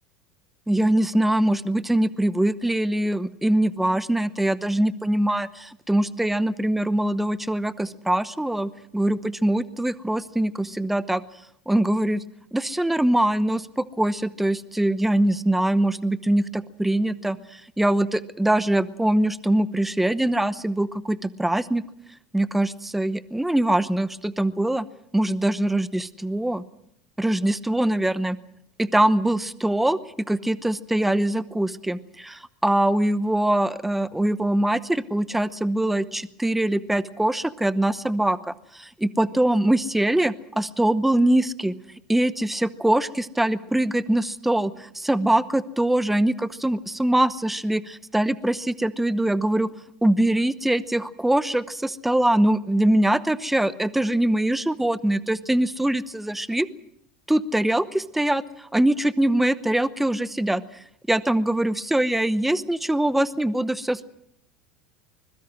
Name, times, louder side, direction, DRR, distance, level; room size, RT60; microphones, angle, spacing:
voice 1, 0.7-11.2 11.7-12.2 12.5-21.8 22.3-24.9 25.1-26.6 27.2-28.4 28.8-41.7 42.1-49.7 50.0-56.7 57.3-60.6 61.1-64.1, right 1 dB, 5° right, 16 dB, 0.9 m, -23 dB
24.5 x 21.5 x 6.2 m, 0.74 s
hypercardioid pair, 90°, 4 cm